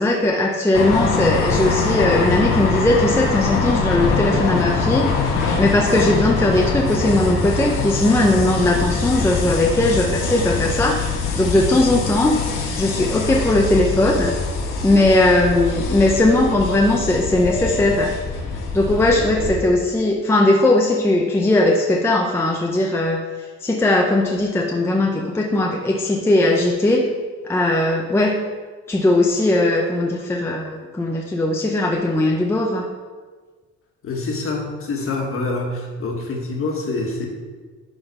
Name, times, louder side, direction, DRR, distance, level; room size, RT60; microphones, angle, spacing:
voice 1, 0.0-5.1 5.6-11.0 11.4-12.4 12.8-14.3 14.8-18.1 18.7-23.2 23.6-27.1 27.4-28.4 28.9-32.9, left 1 dB, 10° left, 0 dB, 0.6 m, -18 dB
sound 1, 0.7-19.6, left 4 dB, 85° left, 1.5 m, -23 dB
voice 2, 34.0-37.3, left 3 dB, 45° left, 0 dB, 1.5 m, -26 dB
10.5 x 3.8 x 5.4 m, 1.4 s
cardioid pair, 155°, 30 cm